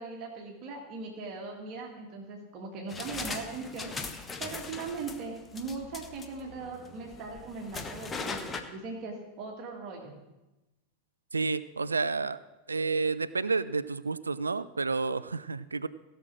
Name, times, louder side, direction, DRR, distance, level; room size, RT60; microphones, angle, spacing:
voice 1, 0.0-3.9 4.4-10.1, right 4 dB, 40° right, 0 dB, 1.9 m, -39 dB
sound 1, 2.9-8.6, left 4 dB, 15° left, 1.1 m, -40 dB
voice 2, 11.3-12.4 12.7-15.9, right 4 dB, 75° right, 16 dB, 0.3 m, -30 dB
16.5 x 6.5 x 6.1 m, 1.0 s
figure-of-eight pair, 90°, 0 cm